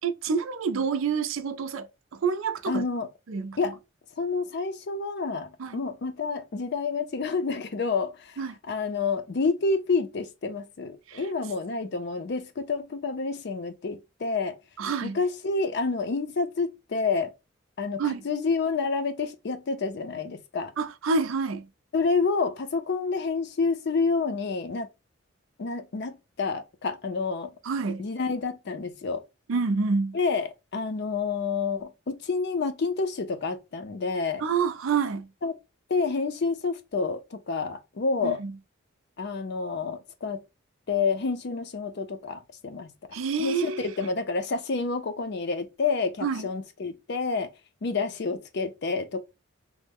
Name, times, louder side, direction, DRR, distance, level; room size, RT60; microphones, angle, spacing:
voice 1, 0.0-1.9 2.2-2.8 3.3-3.6 5.6-5.8 8.4-8.6 11.1-11.2 14.8-15.2 18.0-18.2 20.8-21.7 27.7-28.1 29.5-30.2 34.4-35.3 38.2-38.5 43.1-43.9 46.2-46.5, right 5 dB, 80° right, 0.4 m, -27 dB
voice 2, 2.7-3.1 3.6-3.8 4.2-8.4 8.7-14.6 15.0-17.3 17.8-20.7 21.9-24.9 25.6-27.5 28.0-29.2 30.1-34.4 35.4-35.5 35.9-38.4 39.2-40.4 40.9-42.9 43.4-47.5 47.8-49.2, left 4 dB, 55° left, 0.5 m, -29 dB
3.1 x 2.0 x 3.4 m
head